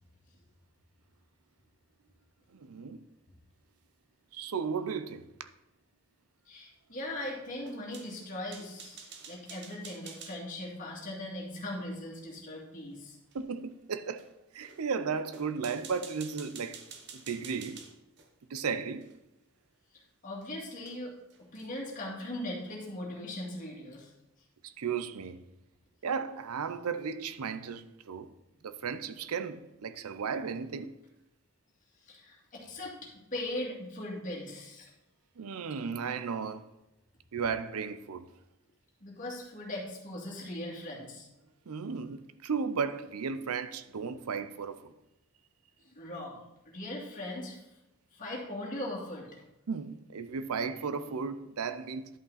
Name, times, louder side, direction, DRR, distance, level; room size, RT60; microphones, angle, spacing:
voice 1, 2.5-3.0 4.3-5.5 13.3-14.3 14.5-16.8 17.1-17.9 18.5-19.1 24.6-25.4 26.0-28.3 28.6-31.0 35.4-36.7 37.3-38.3 41.7-44.9 49.7-52.1, right 5 dB, 85° right, 0.6 m, -35 dB
voice 2, 6.5-13.2 20.2-21.1 21.5-24.1 32.1-34.9 39.0-41.3 45.9-46.4 46.7-47.6 48.1-49.4, left 1 dB, 35° left, 2.2 m, -39 dB
sound 1, 7.6-10.4 13.3-13.4 14.2-14.3 14.6-14.8 15.3-18.3 19.0-19.2 20.4-20.5 20.9-21.0 21.3-21.8, right 6 dB, 50° right, 0.9 m, -49 dB
10.5 x 5.6 x 4.1 m
head